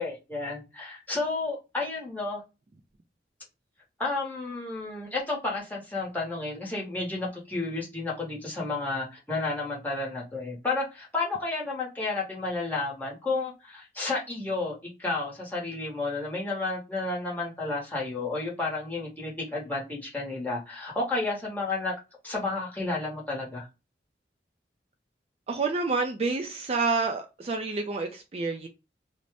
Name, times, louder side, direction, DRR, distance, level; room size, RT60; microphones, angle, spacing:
voice 1, 0.0-2.4 4.0-21.9 22.2-23.7, left 3 dB, 10° left, 0.9 m, -31 dB
voice 2, 25.5-28.7, right 4 dB, 35° right, 0.3 m, -28 dB
2.6 x 2.1 x 3.2 m
head